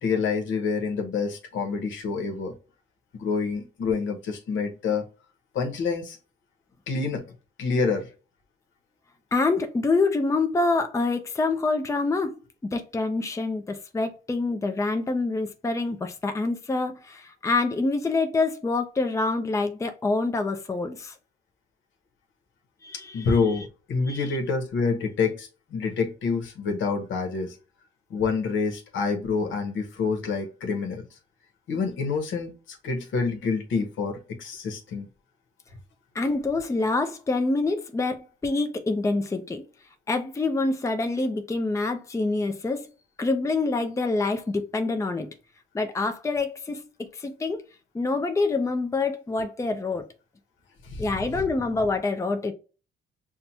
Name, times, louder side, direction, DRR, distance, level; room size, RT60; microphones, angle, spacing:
voice 1, 0.0-2.5 3.2-5.0 5.5-6.2 6.9-7.2 7.6-8.1 23.1-27.5 28.1-31.0 31.7-35.1 50.8-51.1, left 4 dB, 75° left, 1.0 m, -27 dB
voice 2, 9.3-21.1 22.8-23.3 24.1-24.3 36.1-39.6 40.1-42.9 43.2-45.3 45.7-47.6 47.9-50.1 51.0-52.5, left 3 dB, 15° left, 0.5 m, -26 dB
5.7 x 2.2 x 2.8 m
cardioid pair, 90°, 20 cm